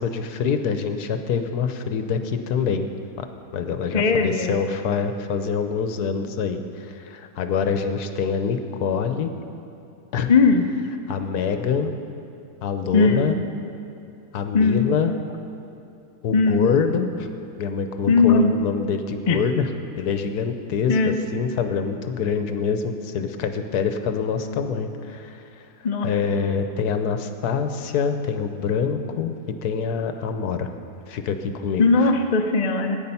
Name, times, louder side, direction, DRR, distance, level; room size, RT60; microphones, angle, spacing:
voice 1, 0.0-2.9 3.2-3.3 3.5-9.3 10.1-10.3 11.1-11.9 12.6-13.4 14.3-15.1 16.2-19.7 20.0-25.6 26.0-30.7 31.1-32.1, left 6 dB, 75° left, 8 dB, 1.3 m, -25 dB
voice 2, 3.9-4.6 10.3-10.6 12.9-13.3 14.5-14.9 16.3-16.7 18.1-18.5 19.3-19.4 20.9-21.2 25.8-26.1 31.8-33.0, left 4 dB, 45° left, 5 dB, 0.5 m, -18 dB
15.0 x 9.2 x 5.5 m, 2.6 s
omnidirectional pair, 1.7 m